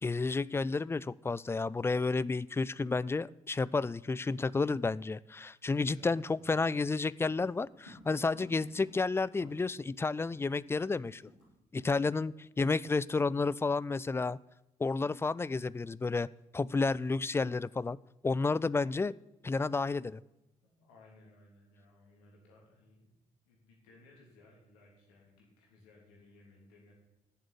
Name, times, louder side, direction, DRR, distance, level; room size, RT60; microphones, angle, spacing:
voice 1, 0.0-11.2 11.7-14.4 14.8-16.3 16.5-18.0 18.2-19.1 19.4-20.2, left 3 dB, 15° left, 20 dB, 0.3 m, -31 dB
voice 2, 5.9-6.7 18.8-19.0 20.6-23.1 23.4-26.9, left 2 dB, 70° left, -2 dB, 3.3 m, -60 dB
sound 1, 7.2-9.9 10.2-10.3 10.5-11.5 11.8-12.0 12.4-12.6, left 1 dB, 85° left, 3.4 m, -56 dB
10.0 x 7.3 x 8.8 m, 0.94 s
figure-of-eight pair, 40°, 20 cm